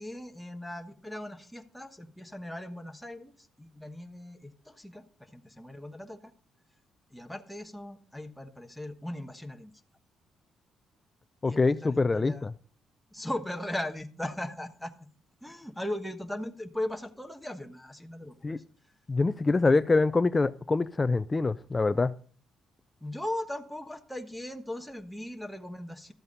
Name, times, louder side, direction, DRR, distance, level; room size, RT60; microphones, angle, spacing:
voice 1, 0.0-6.3 7.1-9.7 11.5-12.5 13.1-14.9 15.4-18.3 23.0-26.1, left 1 dB, 5° left, 1.3 m, -38 dB
voice 2, 11.4-12.5 18.4-18.6 19.1-22.1, left 3 dB, 25° left, 0.5 m, -25 dB
13.0 x 8.0 x 5.4 m
cardioid pair, 90°, 0 cm